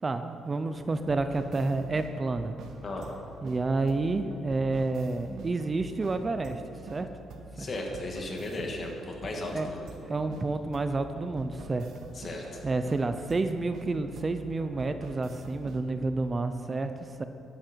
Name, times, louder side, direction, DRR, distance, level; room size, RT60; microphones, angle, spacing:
voice 1, 0.0-2.5 3.4-7.1 7.6-7.7 9.5-9.7 10.0-11.9 12.6-17.2, right 3 dB, 30° right, 9 dB, 0.6 m, -30 dB
sound 1, 0.7-15.9, right 3 dB, 70° right, 1.1 m, -46 dB
voice 2, 7.6-10.0 12.1-12.6, left 2 dB, 40° left, 0 dB, 2.3 m, -36 dB
13.5 x 10.0 x 4.7 m, 2.6 s
cardioid pair, 95°, 0 cm